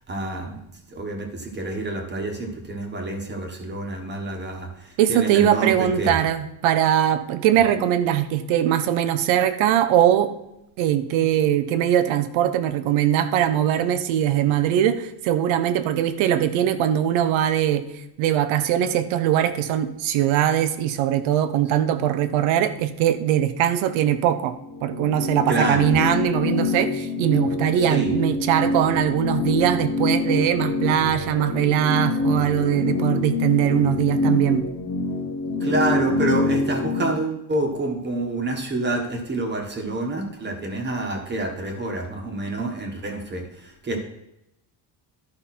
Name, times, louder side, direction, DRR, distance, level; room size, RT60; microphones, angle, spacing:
voice 1, 0.1-0.6 0.9-6.1 25.5-25.8 27.9-28.1 35.6-44.0, right 2 dB, 20° right, 2 dB, 1.5 m, -27 dB
voice 2, 5.0-10.3 10.8-17.8 18.2-24.5 24.8-34.6, right 10 dB, 85° right, 11 dB, 1.0 m, -21 dB
sound 1, 24.6-37.1, left 3 dB, 25° left, 1.0 m, -25 dB
12.5 x 5.5 x 4.3 m, 0.86 s
cardioid pair, 160°, 46 cm